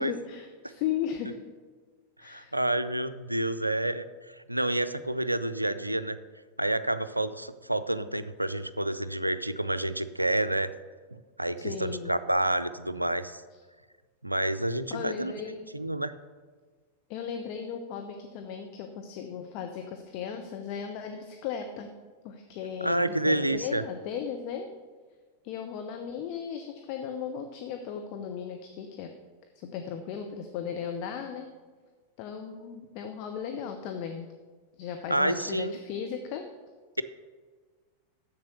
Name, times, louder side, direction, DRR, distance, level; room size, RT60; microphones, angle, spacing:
voice 1, 0.0-1.4 2.2-2.6 11.6-12.1 14.9-15.7 17.1-21.9 22.2-24.7 25.4-29.1 29.5-31.5 32.2-34.3 34.8-36.5, left 7 dB, 45° left, 5 dB, 0.8 m, -36 dB
voice 2, 2.2-4.0 4.5-6.2 6.6-10.7 11.4-13.4 14.2-15.3 15.7-16.1 22.8-23.8 35.1-35.8, right 1 dB, 85° right, 13 dB, 0.4 m, -28 dB
7.6 x 7.0 x 7.0 m, 1.5 s
figure-of-eight pair, 90°, 0 cm